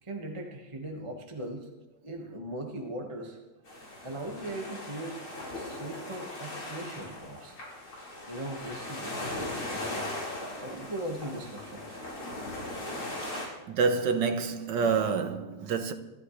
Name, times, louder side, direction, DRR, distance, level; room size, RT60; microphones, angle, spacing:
voice 1, 0.0-1.7 2.0-3.4 4.0-5.2 5.5-7.6 8.3-10.1 10.6-11.9, right 1 dB, 15° right, 1.3 m, -39 dB
sound 1, 3.7-13.5, left 1 dB, 75° left, 5.2 m, -39 dB
voice 2, 13.3-15.9, right 5 dB, 65° right, 1.6 m, -28 dB
26.0 x 13.0 x 3.2 m
omnidirectional pair, 2.3 m